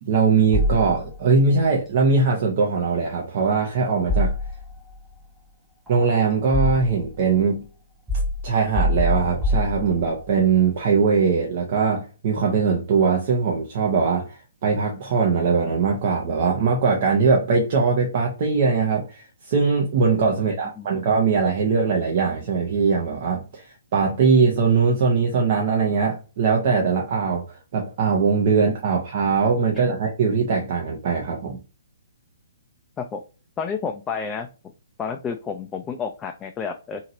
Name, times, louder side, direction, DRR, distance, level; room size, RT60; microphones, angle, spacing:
voice 1, 0.0-4.3 5.9-7.6 8.4-31.6, right 5 dB, 50° right, 0.7 m, -21 dB
sound 1, 0.5-1.4 4.1-5.0 5.9-7.2 8.1-10.3, left 1 dB, 5° right, 0.9 m, -25 dB
voice 2, 33.6-34.5 35.0-37.0, left 6 dB, 15° left, 0.4 m, -30 dB
2.9 x 2.8 x 2.6 m
figure-of-eight pair, 130°, 0 cm